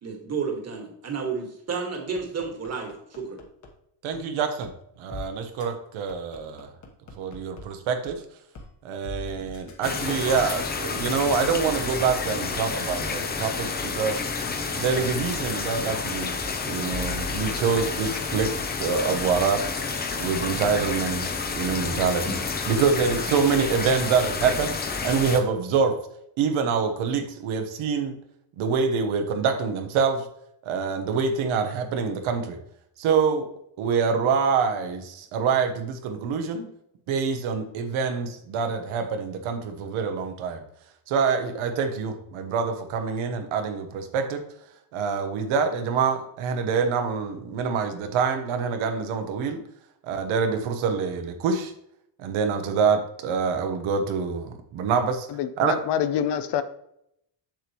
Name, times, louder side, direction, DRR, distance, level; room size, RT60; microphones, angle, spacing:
voice 1, 0.0-3.4, right 5 dB, 35° right, 1.7 m, -31 dB
sound 1, 2.2-3.7 4.1-4.2 4.6-4.7 5.1-5.2 5.6-5.7 6.1-7.6 8.1-8.2 8.5-8.7 9.0-11.5 12.0-12.1 12.5-12.6 13.0-13.1 13.5-13.6 14.0-15.5 15.9-16.0 16.4-16.5 16.9-17.7, left 3 dB, 35° left, 1.2 m, -39 dB
voice 2, 4.0-4.7 5.0-6.7 7.2-8.2 8.8-14.2 14.8-16.4 16.6-18.5 18.8-19.6 20.2-22.4 22.7-24.7 25.0-26.0 26.4-28.2 28.6-30.3 30.6-32.6 33.0-33.5 33.8-36.7 37.1-40.6 41.1-44.4 44.9-49.6 50.0-51.7 52.2-55.3 55.6-55.7, right 5 dB, 85° right, 1.2 m, -25 dB
sound 2, 9.8-25.4, left 4 dB, 20° left, 0.5 m, -30 dB
voice 3, 55.3-56.6, left 9 dB, 60° left, 0.6 m, -26 dB
7.5 x 7.1 x 3.0 m
cardioid pair, 175°, 47 cm